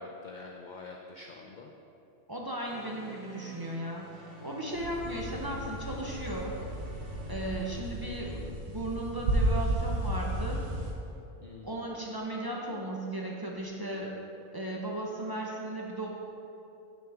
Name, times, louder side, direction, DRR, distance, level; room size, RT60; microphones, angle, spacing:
voice 1, 0.0-1.7 11.4-11.8, left 3 dB, 75° left, 2 dB, 0.4 m, -46 dB
voice 2, 2.3-6.6 7.3-10.6 11.6-14.2 14.5-16.2, right 1 dB, 25° right, -2 dB, 0.5 m, -36 dB
sound 1, 2.6-7.7, equal, 45° right, 1.3 m, -49 dB
sound 2, 4.7-10.9, right 1 dB, 85° right, 1.2 m, -33 dB
7.5 x 6.2 x 3.5 m, 2.7 s
omnidirectional pair, 1.3 m